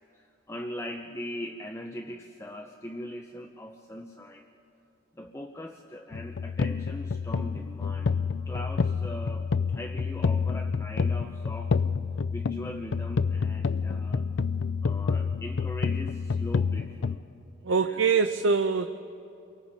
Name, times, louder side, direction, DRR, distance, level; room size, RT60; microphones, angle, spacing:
voice 1, 0.1-4.5 5.1-8.2 8.5-11.8 12.3-14.3 14.8-17.2 17.7-18.3, left 1 dB, 15° left, 2 dB, 0.7 m, -40 dB
sound 1, 6.1-17.2, left 5 dB, 75° left, 0.5 m, -28 dB
voice 2, 17.6-19.0, right 5 dB, 85° right, 8 dB, 0.6 m, -24 dB
29.5 x 23.5 x 4.2 m, 2.9 s
head